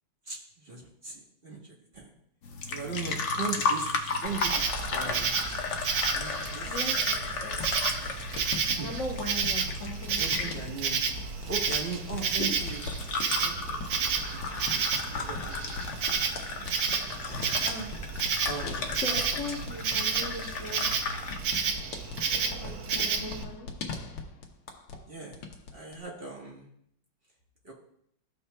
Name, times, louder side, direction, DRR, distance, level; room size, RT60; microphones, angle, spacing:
voice 1, 0.3-1.6 1.9-2.1 2.7-5.6 6.1-6.7 8.7-8.9 10.1-11.0 11.5-12.8 13.4-14.2 14.5-15.9 17.6-18.0 18.4-19.0 22.5-23.1 25.1-25.4 25.7-26.7 27.6-27.7, right 4 dB, 35° right, -2 dB, 1.2 m, -39 dB
sound 1, 2.4-21.4, left 4 dB, 70° left, 0.6 m, -35 dB
Insect, 4.2-23.4, right 6 dB, 75° right, 0.9 m, -31 dB
voice 2, 6.6-7.7 8.8-10.6 12.4-12.6 13.8-14.0 17.2-17.5 18.2-18.3 18.9-20.9 21.5-21.8 22.3-23.7, left 2 dB, 50° left, -2 dB, 1.0 m, -39 dB
sound 2, 7.5-25.1 25.3-26.0, left 4 dB, 90° left, 1.8 m, -41 dB
13.5 x 5.6 x 2.2 m, 0.70 s
omnidirectional pair, 2.3 m